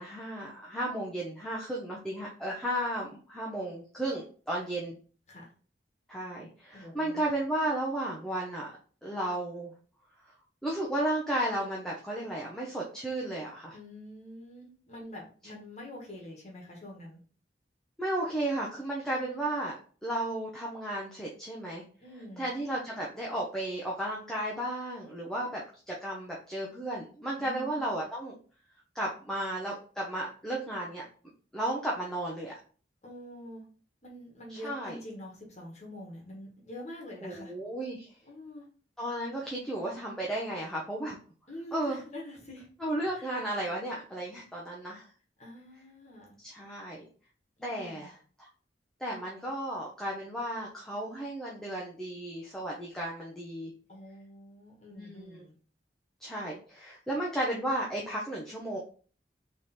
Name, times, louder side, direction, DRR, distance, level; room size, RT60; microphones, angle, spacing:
voice 1, 0.0-4.9 6.1-8.7 9.0-9.7 10.6-13.8 18.0-21.8 22.4-28.4 28.9-31.0 31.5-32.6 34.5-35.0 37.2-38.1 39.0-41.2 41.7-42.0 42.8-45.1 46.4-47.1 47.6-48.5 49.0-53.7 54.9-55.4 56.2-58.8, right 1 dB, 5° left, -4 dB, 0.8 m, -34 dB
voice 2, 6.7-7.2 13.7-17.2 22.0-22.5 27.4-27.8 33.0-33.6 34.0-37.5 38.2-38.7 41.5-42.7 43.1-43.3 45.4-46.4 47.6-48.1 53.9-55.5, left 1 dB, 40° left, -1 dB, 1.4 m, -45 dB
3.6 x 3.2 x 4.3 m, 0.40 s
head